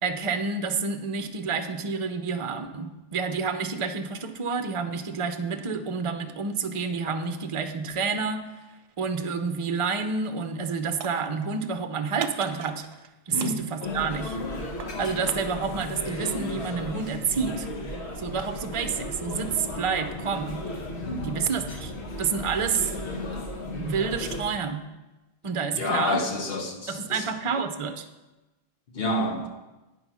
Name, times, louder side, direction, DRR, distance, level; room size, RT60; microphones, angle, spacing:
voice 1, 0.0-8.4 9.0-12.8 13.3-14.4 15.0-17.7 18.2-20.7 21.2-21.9 22.2-22.9 23.8-24.8 25.4-26.2 26.9-28.0, right 5 dB, 40° right, 9 dB, 0.5 m, -29 dB
sound 1, 9.8-10.1 10.4-11.7 12.2-13.1 13.4-15.0, right 8 dB, 75° right, 0.8 m, -40 dB
voice 2, 13.3-13.6 21.0-21.3 25.7-27.3 28.9-29.5, left 2 dB, 65° left, 2 dB, 1.2 m, -28 dB
sound 2, 13.8-24.4, left 1 dB, 80° left, 1.5 m, -35 dB
9.0 x 5.5 x 6.0 m, 1.1 s
omnidirectional pair, 1.1 m